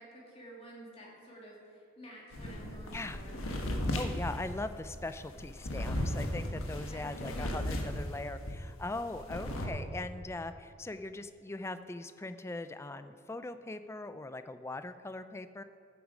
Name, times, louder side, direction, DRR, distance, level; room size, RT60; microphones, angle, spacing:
voice 1, 0.0-3.3 6.9-7.6, right 1 dB, 30° left, -3 dB, 2.6 m, -51 dB
sound 1, 2.3-8.6 8.9-9.7, left 1 dB, 85° left, 1.3 m, -36 dB
voice 2, 3.9-15.6, left 2 dB, 15° left, 11 dB, 0.3 m, -40 dB
14.0 x 8.1 x 5.0 m, 2.5 s
head